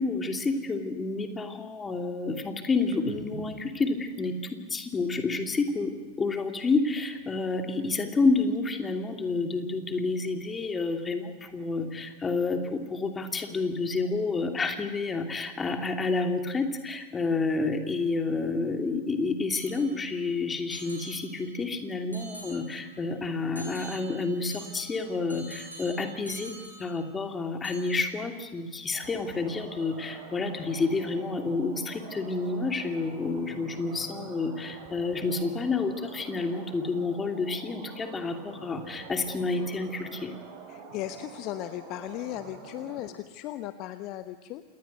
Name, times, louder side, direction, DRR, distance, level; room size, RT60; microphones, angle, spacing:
voice 1, 0.0-26.5 26.8-40.3, left 3 dB, 15° left, 6 dB, 2.7 m, -29 dB
sound 1, 2.9-6.4 6.8-8.6 8.9-10.7 11.1-12.9, right 3 dB, 55° right, 4.0 m, -52 dB
sound 2, 19.5-20.2 20.7-21.7 22.1-23.0 23.6-27.4 27.6-28.3, right 2 dB, 85° right, 7.9 m, -47 dB
sound 3, 28.9-43.1, right 4 dB, 40° right, 4.7 m, -46 dB
voice 2, 40.7-44.6, left 14 dB, 40° left, 12 dB, 0.9 m, -37 dB
27.5 x 20.0 x 8.0 m, 1.3 s
figure-of-eight pair, 90°, 0 cm